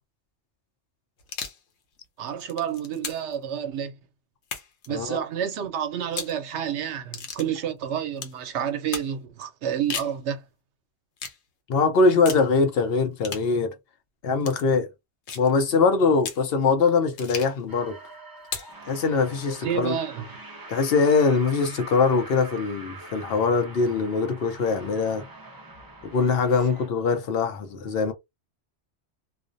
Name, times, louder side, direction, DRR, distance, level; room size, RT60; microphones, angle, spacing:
sound 1, 1.2-1.6 2.3-3.3 4.4-4.9 6.0-6.4 7.1-7.5 8.2-8.4 8.9-9.1 9.7-10.2 11.2-11.4 12.2-12.5 13.2-13.5 14.4-14.6 15.3-15.5 16.2-16.4 17.2-17.6 18.4-18.7, left 6 dB, 85° left, 1.0 m, -35 dB
voice 1, 2.2-4.0 4.9-10.4 19.6-20.3, right 9 dB, 85° right, 0.9 m, -29 dB
voice 2, 11.7-13.7 14.2-14.9 15.4-18.0 18.9-20.0 20.7-25.3 26.0-28.1, left 4 dB, 65° left, 0.7 m, -22 dB
sound 2, 17.7-26.9, right 2 dB, 35° right, 0.3 m, -44 dB
2.4 x 2.0 x 2.5 m
omnidirectional pair, 1.1 m